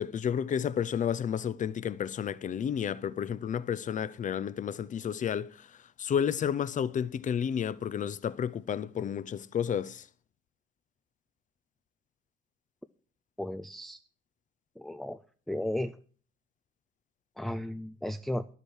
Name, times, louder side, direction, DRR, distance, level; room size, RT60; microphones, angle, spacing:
voice 1, 0.0-5.7 6.0-10.1, left 8 dB, 35° left, 0.7 m, -31 dB
voice 2, 13.4-14.0 14.8-15.2 15.5-16.0 17.4-18.5, left 1 dB, ahead, 0.5 m, -34 dB
10.5 x 8.2 x 6.3 m
supercardioid pair, 90°, 21 cm